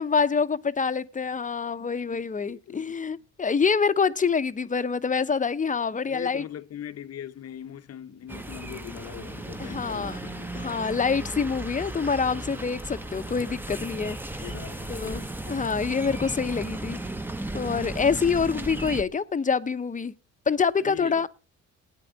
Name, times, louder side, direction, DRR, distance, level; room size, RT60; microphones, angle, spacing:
voice 1, 0.0-6.4 9.6-10.2 10.6-14.2 14.9-17.0 17.5-20.1 20.5-21.3, left 5 dB, 25° left, 0.8 m, -26 dB
voice 2, 2.0-3.0 6.1-10.9 14.4-15.4 20.8-21.3, left 10 dB, 55° left, 0.9 m, -41 dB
sound 1, 8.3-19.0, right 2 dB, 5° right, 0.9 m, -35 dB
17.5 x 9.2 x 4.0 m
cardioid pair, 90°, 30 cm